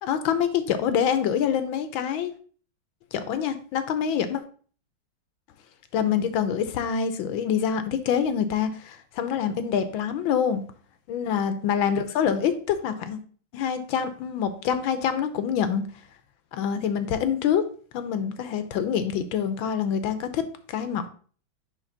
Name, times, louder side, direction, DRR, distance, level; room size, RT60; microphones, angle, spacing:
voice 1, 0.0-2.3 3.1-4.4 5.9-10.6 11.1-13.2 13.5-15.8 16.5-17.6 17.9-21.1, left 8 dB, 80° left, 10 dB, 1.5 m, -26 dB
10.0 x 3.5 x 3.9 m, 0.43 s
omnidirectional pair, 2.2 m